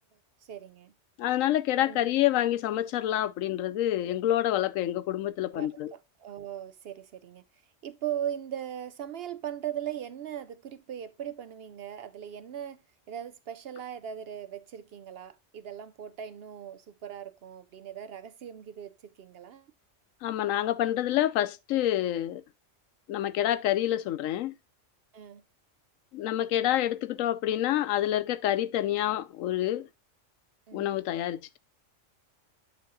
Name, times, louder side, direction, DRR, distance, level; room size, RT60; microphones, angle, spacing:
voice 1, 0.5-0.9 1.8-2.1 5.5-7.4 7.8-12.8 13.1-19.7 25.1-25.4 30.7-30.9, right 10 dB, 65° right, 0.7 m, -39 dB
voice 2, 1.2-5.9 20.2-22.4 23.1-24.5 26.1-29.9 30.7-31.6, left 12 dB, 90° left, 1.0 m, -27 dB
9.0 x 3.5 x 3.7 m
omnidirectional pair, 1.3 m